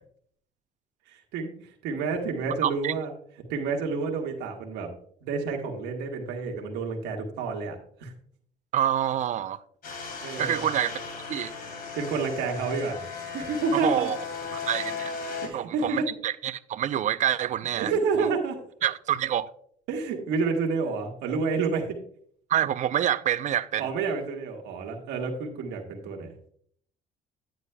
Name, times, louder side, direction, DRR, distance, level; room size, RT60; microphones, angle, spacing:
voice 1, 1.1-3.1 3.5-4.9 5.2-8.1 10.2-10.7 11.9-13.0 13.3-14.1 15.4-16.0 17.8-18.6 19.9-21.9 23.8-26.3, right 4 dB, 90° right, 1.3 m, -29 dB
voice 2, 2.6-2.9 8.7-9.6 10.4-11.0 11.3-11.5 13.7-14.2 14.5-15.1 15.5-17.9 18.8-19.5 22.5-23.9, right 10 dB, 45° right, 0.4 m, -27 dB
sound 1, 9.8-15.5, left 5 dB, 60° left, 2.4 m, -36 dB
9.7 x 9.0 x 2.2 m
cardioid pair, 110°, 17 cm